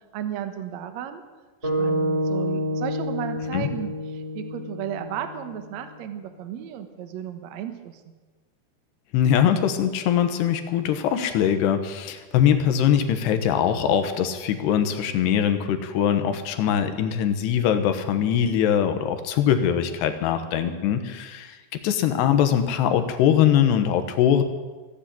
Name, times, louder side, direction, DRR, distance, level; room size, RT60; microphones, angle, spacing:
voice 1, 0.1-1.2 1.6-8.0, right 10 dB, 70° right, 8 dB, 1.7 m, -34 dB
sound 1, 1.6-5.9, equal, 10° right, 3.7 m, -28 dB
voice 2, 9.1-21.6 21.8-24.4, left 9 dB, 85° left, 8 dB, 3.2 m, -22 dB
15.5 x 10.0 x 8.7 m, 1.3 s
omnidirectional pair, 4.8 m